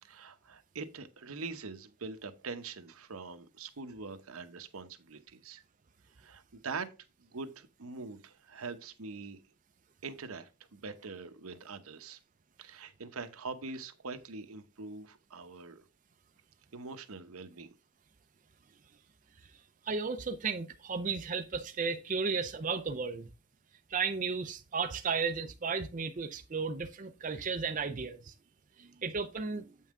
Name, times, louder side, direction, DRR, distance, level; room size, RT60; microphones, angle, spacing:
voice 1, 0.0-5.6 6.2-6.9 7.2-9.4 10.0-12.2 12.6-15.8 16.7-17.7, right 4 dB, 80° right, 0.9 m, -43 dB
voice 2, 19.8-23.3 23.9-28.3 28.8-29.7, right 5 dB, 35° right, 0.5 m, -34 dB
8.4 x 5.6 x 3.6 m
head